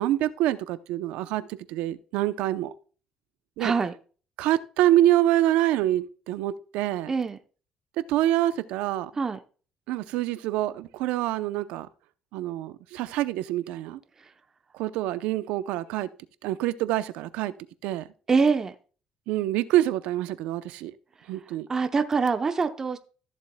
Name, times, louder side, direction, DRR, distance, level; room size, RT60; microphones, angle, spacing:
voice 1, 0.0-2.7 3.6-3.7 4.4-7.1 8.0-9.1 9.9-11.9 12.3-14.0 14.7-16.1 16.4-17.5 17.8-18.1 19.3-20.9 21.3-21.7, right 14 dB, 90° right, 0.6 m, -26 dB
voice 2, 3.6-3.9 7.1-7.4 9.2-9.4 18.3-18.7 21.7-23.0, right 5 dB, 25° right, 0.7 m, -24 dB
14.0 x 7.4 x 2.2 m
cardioid pair, 125°, 2 cm